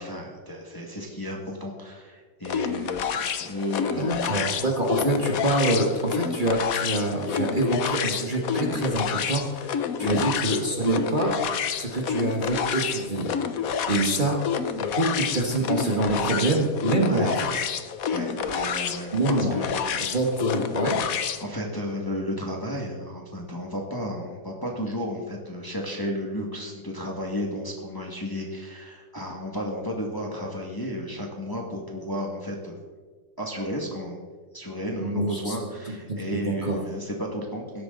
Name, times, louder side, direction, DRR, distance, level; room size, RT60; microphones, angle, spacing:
voice 1, 0.0-4.4 10.0-10.3 16.8-17.7 18.1-19.9 21.4-32.8 33.4-34.2 34.5-37.8, equal, 10° left, 0 dB, 1.8 m, -33 dB
sound 1, 2.4-21.4, left 7 dB, 60° left, 1.1 m, -29 dB
voice 2, 4.0-11.4 11.7-13.3 13.9-14.4 14.8-17.3 19.1-19.5 20.1-21.0 35.0-35.6 35.9-36.8, right 2 dB, 30° right, -1 dB, 1.6 m, -26 dB
17.0 x 13.0 x 4.0 m, 1.5 s
omnidirectional pair, 2.0 m